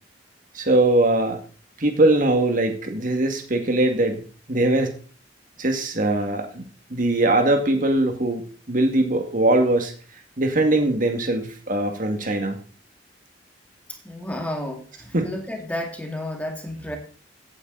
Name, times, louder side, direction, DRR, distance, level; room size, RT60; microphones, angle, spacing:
voice 1, 0.5-1.4 1.8-4.9 5.6-6.6 6.9-8.4 8.7-9.9 10.4-12.6 15.1-15.3, right 2 dB, 50° right, 5 dB, 2.1 m, -21 dB
voice 2, 14.0-17.0, left 1 dB, 10° left, 3 dB, 2.1 m, -31 dB
16.0 x 9.0 x 4.0 m, 0.38 s
head